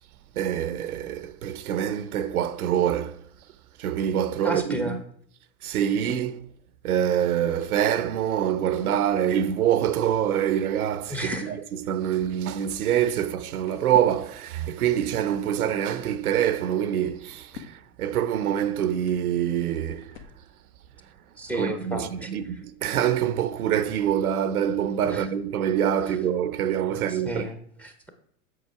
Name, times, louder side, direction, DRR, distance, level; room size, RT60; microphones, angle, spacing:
voice 1, 0.3-3.2 3.8-5.0 5.6-6.4 6.8-20.1 21.5-27.5, right 10 dB, 90° right, 0.7 m, -25 dB
voice 2, 4.4-5.0 11.1-11.5 21.4-22.3 25.1-25.3 26.1-26.2 26.9-28.1, right 1 dB, 5° left, 0.6 m, -33 dB
sound 1, 5.8-6.3 7.0-7.9 8.4-9.0 9.6-20.4, left 8 dB, 65° left, 1.3 m, -48 dB
7.8 x 5.1 x 4.6 m
hypercardioid pair, 120°, 43 cm